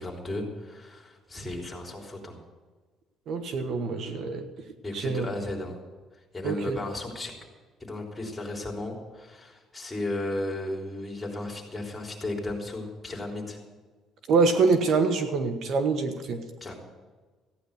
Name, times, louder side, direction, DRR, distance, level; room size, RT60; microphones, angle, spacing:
voice 1, 0.0-2.4 4.8-5.8 6.3-7.3 7.8-13.6 16.6-16.7, left 2 dB, 10° left, 0 dB, 3.5 m, -34 dB
voice 2, 3.3-4.5 4.9-5.3 6.4-6.8 14.3-16.4, right 4 dB, 60° right, 7 dB, 1.3 m, -25 dB
15.0 x 10.0 x 6.6 m, 1.4 s
cardioid pair, 120°, 0 cm